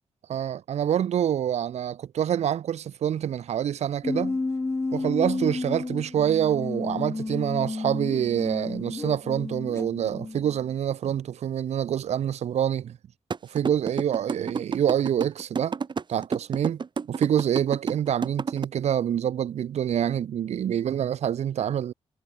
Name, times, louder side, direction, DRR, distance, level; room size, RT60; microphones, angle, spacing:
voice 1, 0.3-4.4 4.9-13.0 13.5-15.8 16.1-21.9, right 10 dB, 80° right, 0.6 m, -26 dB
sound 1, 4.0-10.7, left 3 dB, 25° left, 1.9 m, -31 dB
sound 2, 13.3-18.6, right 5 dB, 45° right, 2.0 m, -29 dB
wide cardioid pair, 125°, 11 cm